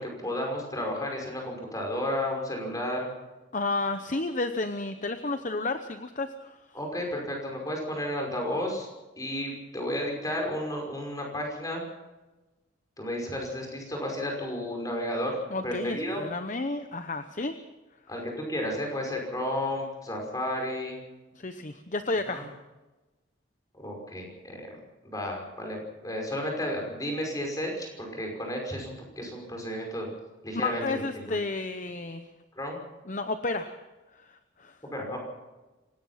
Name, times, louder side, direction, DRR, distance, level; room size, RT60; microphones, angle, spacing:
voice 1, 0.0-3.1 6.7-8.9 9.2-11.8 13.0-15.4 15.6-16.2 18.1-21.0 22.3-22.4 23.7-24.7 25.0-25.8 26.0-30.1 30.4-31.4 32.6-32.8 34.9-35.2, left 1 dB, 20° left, 1 dB, 5.6 m, -32 dB
voice 2, 3.5-6.6 15.5-17.6 21.3-22.5 30.5-32.2 33.1-33.8 34.1-34.8, left 3 dB, 40° left, 9 dB, 0.9 m, -31 dB
25.5 x 18.0 x 5.7 m, 1.1 s
head